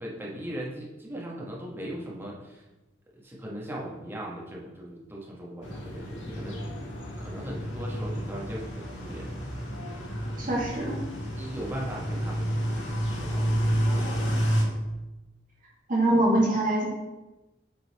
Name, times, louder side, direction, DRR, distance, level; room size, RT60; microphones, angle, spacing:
voice 1, 0.0-2.6 3.2-6.6 7.2-9.4 11.3-12.8 13.2-14.4, right 1 dB, 10° right, -4 dB, 1.3 m, -39 dB
sound 1, 5.6-14.6, equal, 90° left, 1.5 m, -30 dB
voice 2, 10.4-11.0 15.9-16.8, right 1 dB, 45° right, -4 dB, 1.8 m, -23 dB
7.5 x 3.9 x 4.2 m, 1.1 s
head